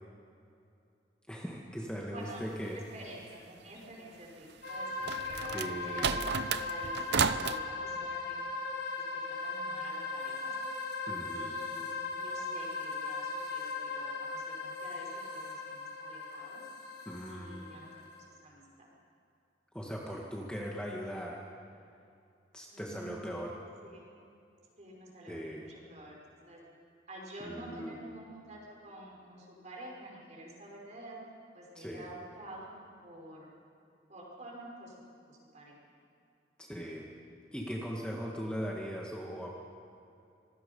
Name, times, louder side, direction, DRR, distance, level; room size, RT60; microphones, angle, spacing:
voice 1, 1.3-2.8 5.5-6.2 11.1-11.6 17.1-17.8 19.7-21.5 22.5-23.6 25.3-25.6 27.4-28.0 31.8-32.1 36.6-37.1 37.5-39.5, equal, 5° left, -2 dB, 1.8 m, -39 dB
voice 2, 2.1-8.4 9.0-10.6 11.3-16.7 17.3-18.9 22.7-23.2 23.8-24.1 24.8-26.6 27.1-31.2 31.5-32.7 33.0-33.5 34.1-34.9 35.3-35.8, right 1 dB, 40° right, -2 dB, 5.5 m, -49 dB
sound 1, 4.6-18.2, left 3 dB, 65° left, 5.3 m, -38 dB
sound 2, 4.7-7.6, right 6 dB, 65° right, 0.7 m, -32 dB
26.0 x 20.0 x 5.5 m, 2.6 s
head